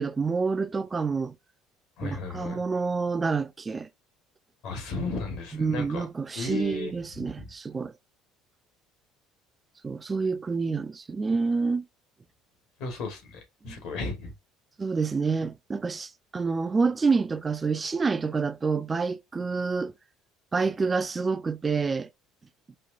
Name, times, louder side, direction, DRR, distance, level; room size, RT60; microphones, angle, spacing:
voice 1, 0.0-1.3 2.0-3.9 5.5-7.9 9.8-11.8 13.7-13.8 14.8-19.9 20.5-22.1, right 4 dB, 25° right, 0.4 m, -28 dB
voice 2, 2.0-2.6 4.6-6.1 6.3-7.5 12.8-14.3, left 2 dB, 65° left, 1.5 m, -34 dB
4.4 x 2.5 x 2.5 m
hypercardioid pair, 65°, 0 cm